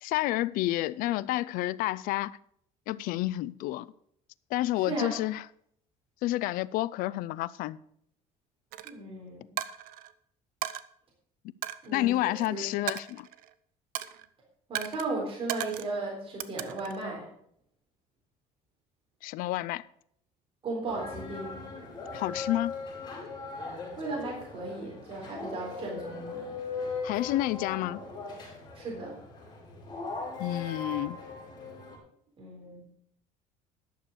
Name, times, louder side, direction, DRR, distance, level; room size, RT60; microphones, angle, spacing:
voice 1, 0.0-2.4 2.9-3.9 4.5-5.4 6.2-7.8 11.9-13.3 19.2-19.8 22.1-22.7 27.0-28.0 30.4-31.2, left 16 dB, 70° left, 0.5 m, -29 dB
voice 2, 4.8-5.2 8.8-9.5 11.8-12.7 14.7-17.3 20.6-21.6 24.0-26.4 28.7-29.1 32.4-32.8, right 3 dB, 40° right, 3.8 m, -36 dB
Coin (dropping), 8.7-8.9 9.6-10.1 10.6-10.8 11.6-12.5 12.9-13.5 14.0-14.3 14.8-15.1 15.5-16.0 16.4-17.0, right 13 dB, 70° right, 0.7 m, -36 dB
sound 1, 20.9-32.0, left 4 dB, 30° left, 5.1 m, -39 dB
11.5 x 6.9 x 6.3 m
cardioid pair, 125°, 15 cm